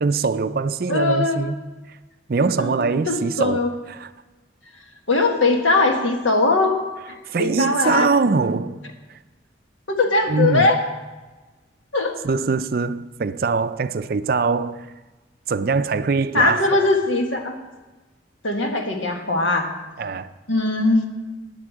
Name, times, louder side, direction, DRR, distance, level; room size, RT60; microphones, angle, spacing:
voice 1, 0.0-1.6 2.3-4.1 7.3-8.8 10.3-10.8 12.2-14.9 15.5-17.0 20.0-20.3, right 4 dB, 50° right, 0.4 m, -22 dB
voice 2, 0.9-1.4 2.6-3.7 5.1-6.8 7.4-8.1 9.9-10.8 11.9-12.2 16.3-17.6 18.4-19.7 20.5-21.0, left 2 dB, 90° left, 1.6 m, -20 dB
9.3 x 8.1 x 7.6 m
head